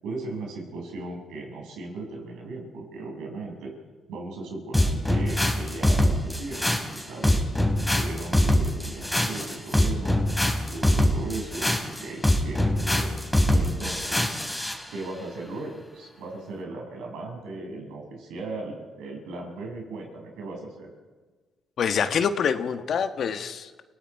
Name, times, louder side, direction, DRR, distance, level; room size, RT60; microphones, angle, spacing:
voice 1, 0.0-3.7 4.1-7.5 7.8-10.2 10.7-13.2 13.5-14.2 14.9-20.9, right 3 dB, 90° right, 1 dB, 6.6 m, -37 dB
sound 1, 4.7-14.8, left 1 dB, 10° left, 3.7 m, -23 dB
voice 2, 21.8-23.8, left 7 dB, 60° left, 8 dB, 1.4 m, -26 dB
30.0 x 18.5 x 4.8 m, 1.3 s
cardioid pair, 90°, 0 cm